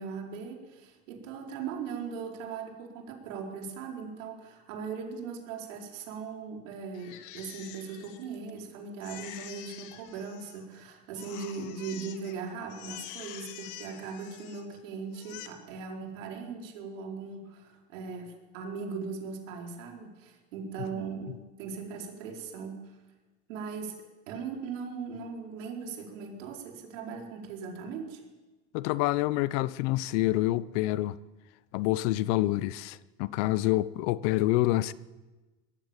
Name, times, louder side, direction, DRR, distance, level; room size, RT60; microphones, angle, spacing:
voice 1, 0.0-23.0 23.5-23.9 24.3-28.2, right 5 dB, 80° right, 4.8 m, -39 dB
Crying sobbing, 6.9-8.6 9.0-10.8 11.1-12.4 12.7-14.8 15.1-15.5, left 12 dB, 55° left, 2.2 m, -46 dB
voice 2, 28.7-31.2 31.7-34.9, left 16 dB, 70° left, 0.9 m, -27 dB
20.0 x 14.5 x 9.0 m
supercardioid pair, 125°, 37 cm